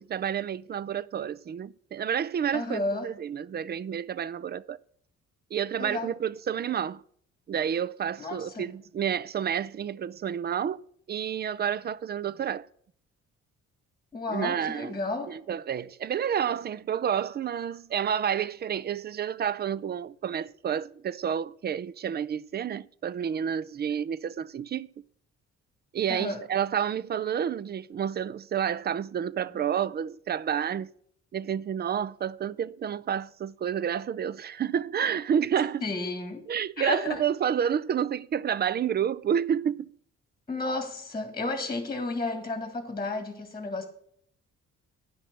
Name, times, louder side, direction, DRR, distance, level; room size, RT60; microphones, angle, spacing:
voice 1, 0.0-4.8 5.5-7.0 7.5-10.8 11.1-12.7 14.3-14.9 15.3-24.9 25.9-30.9 31.3-35.9 36.5-39.9, right 8 dB, 35° right, 0.4 m, -29 dB
voice 2, 2.5-3.1 5.8-6.1 8.2-8.7 14.1-15.4 26.1-26.4 35.8-36.4 36.8-37.2 40.5-43.9, left 2 dB, 15° left, 1.8 m, -32 dB
10.0 x 5.9 x 6.1 m
cardioid pair, 90°, 30 cm